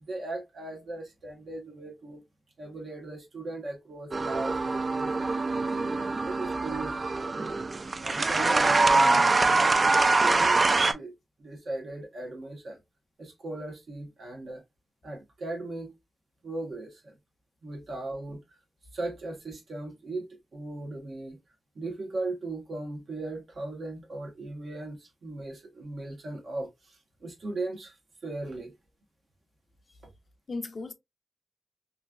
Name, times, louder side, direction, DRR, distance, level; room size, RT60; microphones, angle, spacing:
voice 1, 0.0-2.2 2.6-5.1 6.2-7.0 8.0-11.1 11.4-12.8 13.2-14.6 15.0-15.9 16.4-17.1 17.6-18.4 18.9-21.4 21.7-27.0 27.2-27.9 28.2-28.7, right 2 dB, 65° right, 1.1 m, -38 dB
sound 1, 4.1-10.9, right 3 dB, 40° right, 0.3 m, -24 dB
voice 2, 5.5-6.6 30.5-30.9, left 3 dB, 50° left, 0.4 m, -41 dB
3.0 x 2.5 x 2.3 m
wide cardioid pair, 100°, 0 cm